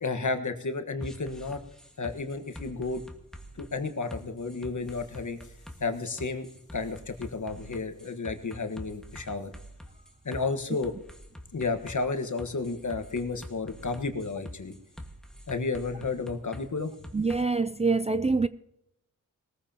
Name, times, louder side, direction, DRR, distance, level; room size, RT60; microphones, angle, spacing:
voice 1, 0.0-1.6 2.0-3.0 3.6-5.4 5.8-9.5 10.2-10.9 11.5-14.7 15.5-16.9, left 4 dB, 60° left, 1.5 m, -32 dB
sound 1, 1.0-17.4, equal, ahead, 1.6 m, -46 dB
voice 2, 17.1-18.5, right 3 dB, 20° right, 0.4 m, -25 dB
20.5 x 14.5 x 2.9 m
cardioid pair, 55°, 34 cm